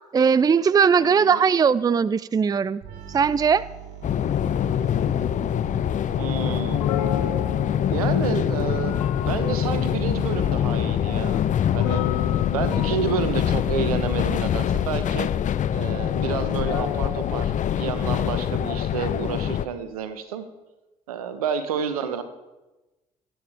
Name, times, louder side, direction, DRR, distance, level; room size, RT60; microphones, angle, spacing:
voice 1, 0.1-2.8 3.1-3.6, right 6 dB, 20° right, 20 dB, 0.4 m, -19 dB
voice 2, 1.0-1.4 6.2-6.8 7.9-11.4 11.7-12.0 12.5-15.3 15.7-20.5 21.1-22.2, right 7 dB, 80° right, 11 dB, 1.1 m, -30 dB
sound 1, 2.8-10.4, right 11 dB, 60° right, 4.1 m, -43 dB
sound 2, 4.0-19.7, left 10 dB, 40° left, 0.7 m, -24 dB
sound 3, 6.7-18.0, left 10 dB, 75° left, 0.9 m, -34 dB
25.5 x 9.2 x 3.5 m, 1.1 s
figure-of-eight pair, 50°, 19 cm